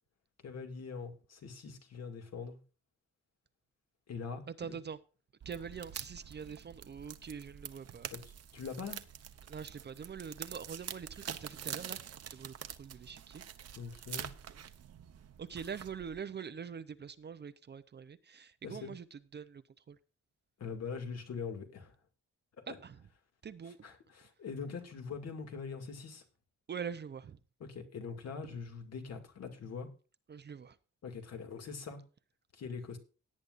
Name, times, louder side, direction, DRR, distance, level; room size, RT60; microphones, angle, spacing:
voice 1, 0.4-2.6 4.1-4.8 8.1-8.2 8.5-9.0 13.8-14.3 18.6-18.9 20.6-21.9 22.7-22.8 23.8-26.2 27.6-29.9 31.0-32.0 32.5-33.0, left 5 dB, 55° left, 2.3 m, -43 dB
voice 2, 4.5-5.0 5.4-8.1 9.5-12.0 12.3-13.4 15.4-20.0 22.7-23.0 23.4-23.8 26.7-27.4 28.4-28.6 30.3-30.8, right 7 dB, 35° right, 0.6 m, -44 dB
sound 1, 5.4-16.2, right 9 dB, 55° right, 1.0 m, -46 dB
17.5 x 9.6 x 2.5 m
wide cardioid pair, 170°, 30 cm